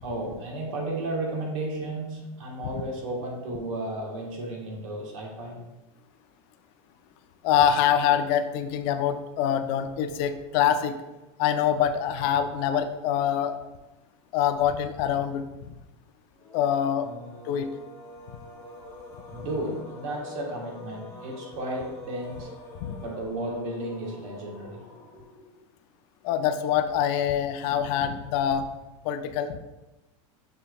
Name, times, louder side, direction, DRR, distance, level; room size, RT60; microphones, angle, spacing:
voice 1, 0.0-5.6 17.0-17.2 19.3-22.5 23.0-24.8, right 1 dB, 70° right, 0 dB, 1.3 m, -33 dB
voice 2, 7.4-11.0 11.4-13.6 14.3-15.5 16.5-17.1 17.5-17.7 22.8-22.9 26.2-28.7 29.0-29.6, left 9 dB, 55° left, 9 dB, 0.4 m, -25 dB
sound 1, 16.3-25.7, left 3 dB, 15° left, 1.1 m, -46 dB
6.9 x 3.3 x 2.3 m, 1.0 s
supercardioid pair, 125°, 17 cm